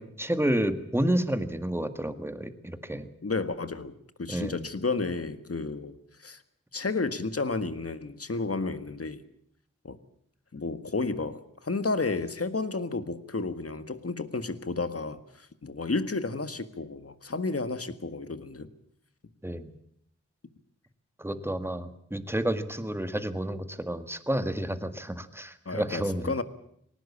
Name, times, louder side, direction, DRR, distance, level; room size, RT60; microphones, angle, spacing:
voice 1, 0.0-3.1 4.3-4.6 19.4-19.7 21.2-26.3, right 1 dB, 10° right, 9 dB, 1.9 m, -30 dB
voice 2, 3.2-6.4 6.7-9.2 9.8-10.0 10.5-18.7 25.7-26.4, left 3 dB, 50° left, 11 dB, 1.7 m, -32 dB
20.0 x 18.5 x 8.5 m, 0.68 s
wide cardioid pair, 60°, 29 cm